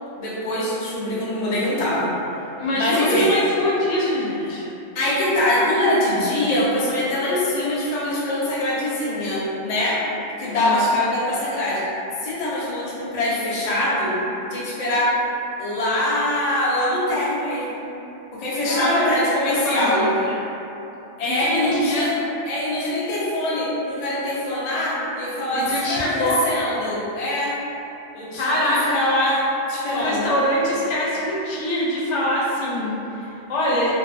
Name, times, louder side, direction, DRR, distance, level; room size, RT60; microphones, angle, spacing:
voice 1, 0.2-2.1 2.7-3.4 4.5-4.6 4.9-10.0 10.4-11.8 12.2-14.1 14.4-15.1 15.6-17.8 18.3-20.0 21.2-22.1 22.5-27.6 28.1-29.4 29.7-30.3, left 1 dB, 50° left, -7 dB, 0.5 m, -23 dB
voice 2, 2.6-4.6 10.6-10.9 18.7-19.2 19.6-20.4 21.2-22.0 25.5-26.4 28.3-28.9 29.9-33.9, left 1 dB, 75° left, -7 dB, 0.9 m, -24 dB
2.7 x 2.1 x 2.4 m, 2.9 s
omnidirectional pair, 1.2 m